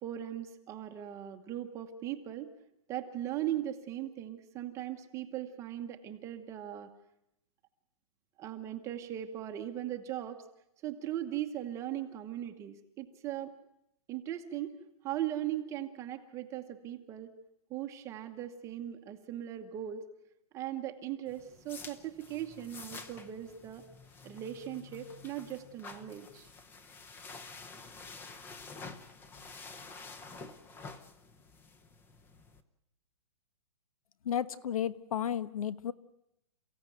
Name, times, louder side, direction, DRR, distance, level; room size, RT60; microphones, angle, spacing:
voice 1, 0.0-2.5 2.9-6.9 8.4-10.4 10.8-13.5 14.1-14.8 15.0-17.3 17.7-20.0 20.5-23.8 24.2-26.5, right 12 dB, 15° right, 6 dB, 1.0 m, -39 dB
sound 1, 21.3-32.6, left 4 dB, 10° left, 0.8 m, -49 dB
voice 2, 34.2-35.9, left 9 dB, 65° left, 16 dB, 1.2 m, -33 dB
29.0 x 15.5 x 9.2 m, 0.84 s
hypercardioid pair, 165°, 19 cm